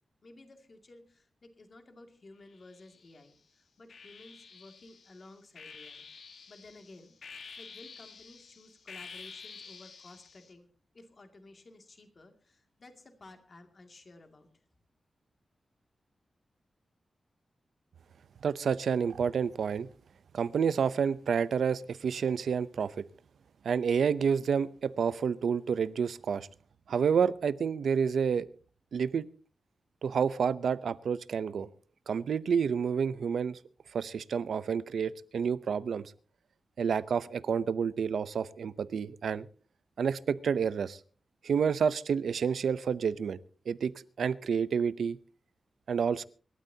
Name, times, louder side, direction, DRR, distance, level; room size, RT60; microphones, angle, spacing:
voice 1, 0.2-6.1 6.5-10.7 10.9-14.5, left 2 dB, 40° left, 5 dB, 2.4 m, -54 dB
sound 1, 2.5-3.3 3.9-10.5, left 5 dB, 70° left, 1.9 m, -50 dB
voice 2, 18.4-19.9 20.3-23.0 23.6-26.5 26.9-28.5 28.9-29.3 30.0-31.7 32.1-33.6 33.9-36.1 36.8-39.5 40.0-41.0 41.4-43.4 43.7-45.2 45.9-46.2, right 6 dB, 90° right, 16 dB, 0.6 m, -29 dB
26.0 x 13.0 x 2.8 m, 0.40 s
wide cardioid pair, 165°, 0 cm